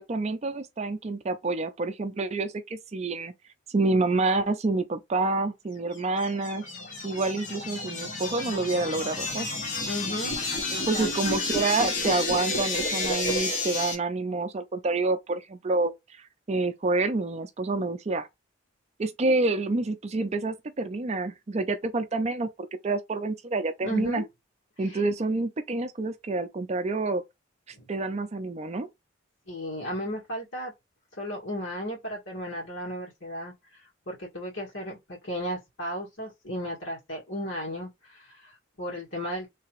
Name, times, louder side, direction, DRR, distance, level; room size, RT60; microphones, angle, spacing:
voice 1, 0.0-3.3 3.7-6.6 7.0-9.5 10.9-15.9 16.5-18.3 19.0-24.2 24.8-27.2 27.9-28.9, right 3 dB, 35° right, 0.4 m, -28 dB
sound 1, 6.0-13.9, left 2 dB, 40° left, 1.3 m, -31 dB
voice 2, 9.9-11.1 23.8-24.3 24.8-25.0 27.7-27.9 29.5-30.7 31.2-33.5 34.1-39.5, equal, 65° left, 2.0 m, -35 dB
3.3 x 2.9 x 3.0 m
head